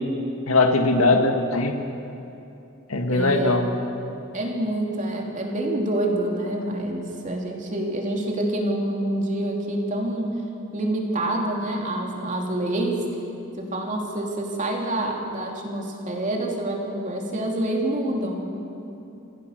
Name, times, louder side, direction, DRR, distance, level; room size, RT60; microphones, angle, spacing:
voice 1, 0.5-1.8 2.9-3.7, left 2 dB, 80° left, 4 dB, 1.9 m, -20 dB
voice 2, 3.1-3.6 4.3-10.4 10.7-13.1 13.6-18.6, right 1 dB, 35° right, 0 dB, 3.0 m, -27 dB
27.5 x 16.0 x 6.7 m, 2.8 s
head